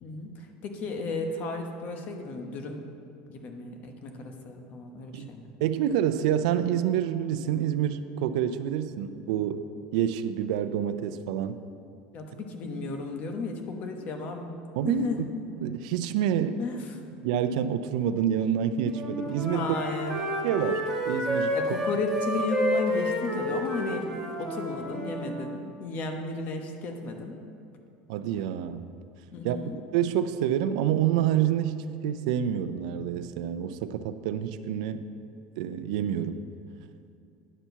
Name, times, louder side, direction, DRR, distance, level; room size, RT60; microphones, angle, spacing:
voice 1, 0.0-2.8 3.3-5.5 12.1-14.5 14.8-15.2 16.6-16.8 19.5-20.1 21.5-24.1 24.4-27.3 29.3-29.7, left 3 dB, 45° left, 4 dB, 1.1 m, -34 dB
voice 2, 5.6-9.6 9.9-11.6 14.8-15.1 15.6-16.6 17.2-19.8 20.4-21.5 28.1-28.9 29.4-29.6 29.9-35.0 35.6-36.4, right 10 dB, 75° right, 11 dB, 0.4 m, -27 dB
Wind instrument woodwind instrument, 18.9-25.3, equal, ahead, 2.3 m, -30 dB
9.9 x 4.5 x 6.9 m, 2.5 s
supercardioid pair, 135°, 4 cm